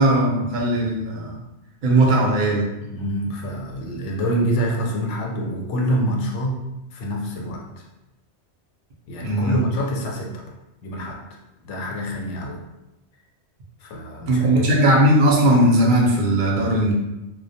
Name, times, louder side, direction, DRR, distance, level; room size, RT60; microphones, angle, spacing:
voice 1, 0.0-1.4 1.8-2.7 9.2-9.5 14.3-16.9, right 1 dB, 55° right, -1 dB, 0.6 m, -18 dB
voice 2, 2.8-6.7 6.9-7.6 9.1-10.3 10.8-11.2 11.6-12.6 13.8-14.7, equal, 85° left, 0 dB, 0.9 m, -26 dB
2.2 x 2.1 x 2.6 m, 0.93 s
omnidirectional pair, 1.2 m